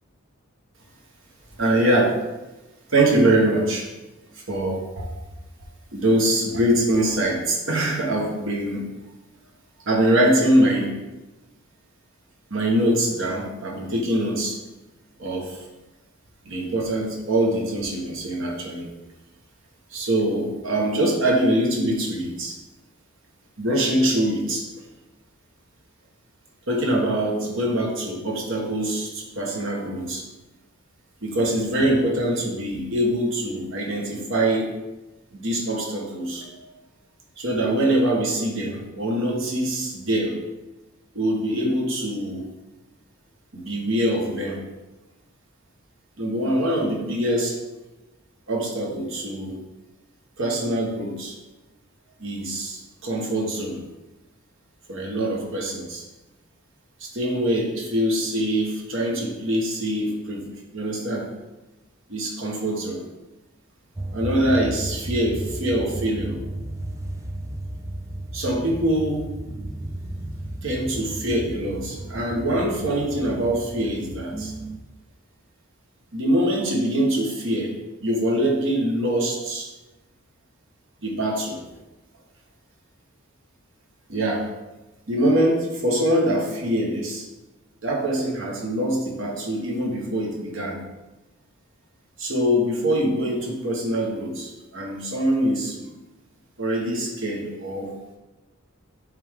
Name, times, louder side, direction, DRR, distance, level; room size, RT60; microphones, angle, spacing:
voice 1, 1.6-2.2 2.9-3.9 4.3-5.1 5.9-8.8 9.9-11.0 12.5-14.6 15.2-15.6 16.4-18.9 19.9-22.6 23.6-24.6 26.7-30.2 31.2-34.7 35.3-36.5 37.4-40.4 41.1-42.5 43.5-44.6 46.2-47.5 48.5-49.5 50.4-51.3 52.2-53.8 54.9-56.0 57.0-60.5 60.7-61.3 62.1-63.0 64.1-66.4 68.3-69.3 70.6-74.5 76.1-77.7 78.0-79.7 81.0-81.6 84.1-84.5 85.1-87.2 87.8-90.8 92.2-95.9 96.6-97.9, right 1 dB, 60° right, -1 dB, 1.4 m, -24 dB
sound 1, 64.0-74.8, right 1 dB, 15° right, 0.3 m, -34 dB
8.7 x 3.4 x 3.7 m, 1.1 s
head